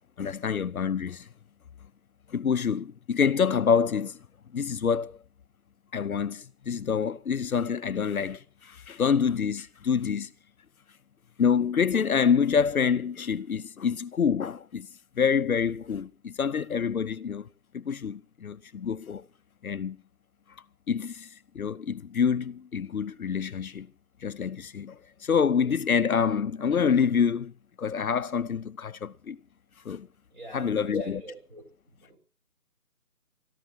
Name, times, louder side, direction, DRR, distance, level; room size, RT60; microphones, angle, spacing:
voice 1, 0.2-1.3 2.3-4.2 4.5-5.2 5.9-10.3 11.4-14.9 15.2-17.5 17.7-19.2 19.6-20.0 20.9-21.3 21.5-23.9 24.2-27.5 27.8-29.4 29.8-30.1 30.5-31.2, left 6 dB, 70° left, 0.7 m, -27 dB
voice 2, 30.3-32.2, right 2 dB, 35° right, 5.9 m, -45 dB
26.5 x 14.0 x 2.8 m
figure-of-eight pair, 160°, 44 cm